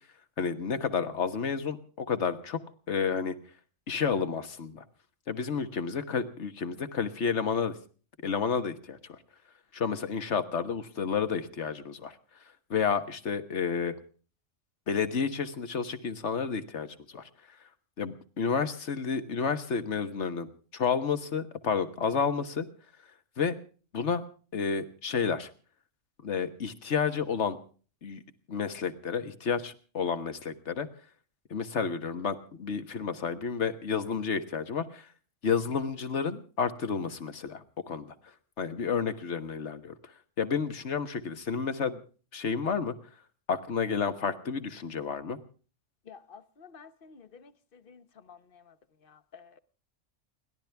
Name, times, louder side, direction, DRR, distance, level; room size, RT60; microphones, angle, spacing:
voice 1, 0.4-2.6 2.9-3.4 3.9-4.8 5.3-7.8 8.2-9.2 9.7-12.2 12.7-14.0 14.9-17.3 18.0-22.7 23.4-23.6 23.9-24.2 24.5-25.5 26.2-27.6 28.0-28.2 28.5-30.9 31.5-35.1 35.4-42.0 42.3-42.9 43.5-45.4, left 6 dB, 65° left, 1.6 m, -31 dB
voice 2, 46.1-47.5 47.9-48.0 48.3-48.4 49.3-49.4, left 6 dB, 50° left, 1.1 m, -50 dB
29.5 x 12.0 x 3.5 m
omnidirectional pair, 1.3 m